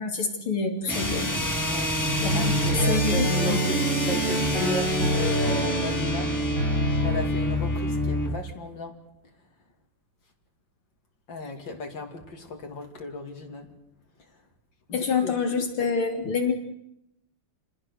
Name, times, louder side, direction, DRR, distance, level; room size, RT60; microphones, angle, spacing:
voice 1, 0.0-1.3 2.2-3.6 14.9-16.5, left 5 dB, 75° left, 5 dB, 3.7 m, -27 dB
sound 1, 0.9-8.4, left 1 dB, 10° left, 2.3 m, -28 dB
sound 2, 2.0-7.2, right 1 dB, 85° right, 8.3 m, -26 dB
voice 2, 2.3-6.3 7.0-9.0 11.3-13.7 14.9-15.4, left 3 dB, 60° left, 4 dB, 3.4 m, -35 dB
29.0 x 20.0 x 6.5 m, 0.80 s
omnidirectional pair, 2.3 m